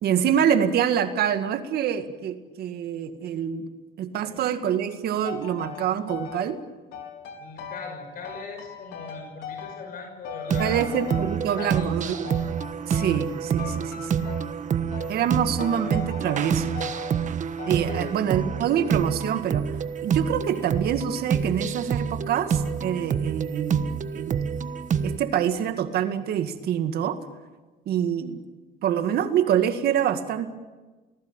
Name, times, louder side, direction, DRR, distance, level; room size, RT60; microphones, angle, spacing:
voice 1, 0.0-3.7 4.0-6.6 10.6-12.3 12.9-14.3 15.1-16.8 17.7-19.7 20.0-23.9 24.1-24.5 25.0-27.2 27.9-28.4 28.8-30.5, right 9 dB, 70° right, 8 dB, 2.0 m, -26 dB
sound 1, 5.2-6.5 6.9-8.0 8.2-10.0 10.2-11.8 12.2-13.3 13.6-14.6 14.9-15.2 15.6-17.2 17.6-17.9, left 7 dB, 80° left, 4.1 m, -39 dB
voice 2, 7.4-10.8 11.6-12.2 17.8-18.1, left 4 dB, 60° left, 4 dB, 5.9 m, -39 dB
sound 2, 10.5-25.2, right 7 dB, 45° right, 1.3 m, -27 dB
29.0 x 19.5 x 9.0 m, 1.3 s
cardioid pair, 110°, 17 cm